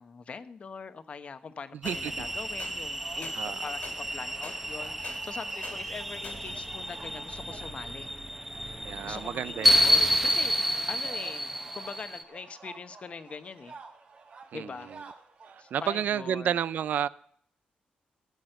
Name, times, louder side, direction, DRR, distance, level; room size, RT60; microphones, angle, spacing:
voice 1, 0.0-8.1 9.0-10.6 10.9-13.8 14.5-15.0 15.6-16.6, left 5 dB, 45° left, 11 dB, 0.9 m, -42 dB
sound 1, 1.8-2.0 2.6-2.7 3.2-3.4 3.8-4.0 4.4-4.6 5.0-5.2 5.6-5.8 6.2-6.4, left 5 dB, 65° left, 2.0 m, -43 dB
sound 2, 1.8-12.2, equal, 5° right, 0.9 m, -30 dB
voice 2, 1.8-2.3 3.4-3.7 8.8-10.1 14.5-15.0 15.5-17.1, right 9 dB, 80° right, 18 dB, 0.4 m, -32 dB
sound 3, 2.0-15.9, right 4 dB, 50° right, 1.8 m, -51 dB
16.0 x 6.3 x 7.8 m, 0.65 s
wide cardioid pair, 130°, 3 cm